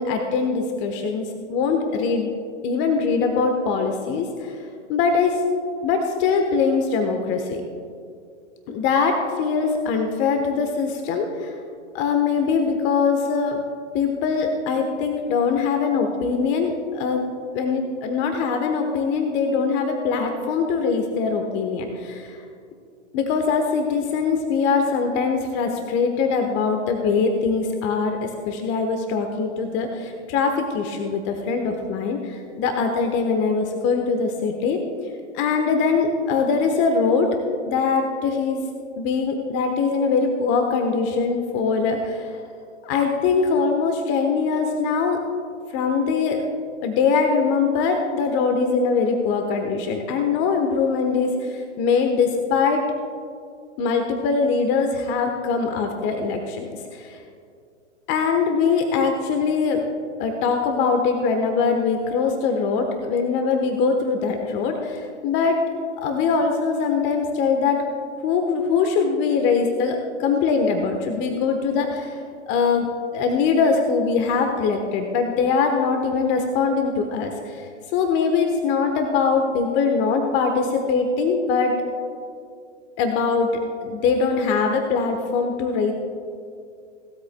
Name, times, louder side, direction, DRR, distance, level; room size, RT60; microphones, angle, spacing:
voice 1, 0.0-2.3 2.6-4.6 4.9-5.4 5.8-7.6 8.7-11.5 11.9-13.6 13.9-17.3 17.5-22.4 23.1-34.8 35.3-37.3 37.7-38.7 39.0-42.3 42.8-45.2 45.7-46.5 46.8-52.8 53.8-57.2 58.1-59.9 60.2-65.6 66.0-67.8 68.2-72.2 72.5-81.8 83.0-85.9, left 5 dB, 30° left, 5 dB, 1.1 m, -22 dB
19.0 x 13.0 x 2.2 m, 2.4 s
hypercardioid pair, 115°, 36 cm